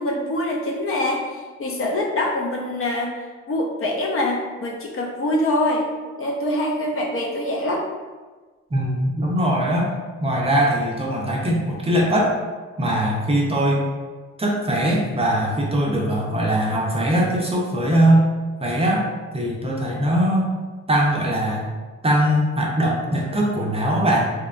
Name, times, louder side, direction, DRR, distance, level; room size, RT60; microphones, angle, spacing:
voice 1, 0.0-5.9 6.2-7.9, left 1 dB, 45° left, 0 dB, 0.5 m, -24 dB
voice 2, 8.7-9.9 10.2-12.4 12.8-13.8 14.4-18.3 18.6-19.0 19.3-20.5 20.9-21.6 22.0-24.3, right 1 dB, 20° right, -3 dB, 0.5 m, -21 dB
2.9 x 2.2 x 2.4 m, 1.3 s
cardioid pair, 90°, 30 cm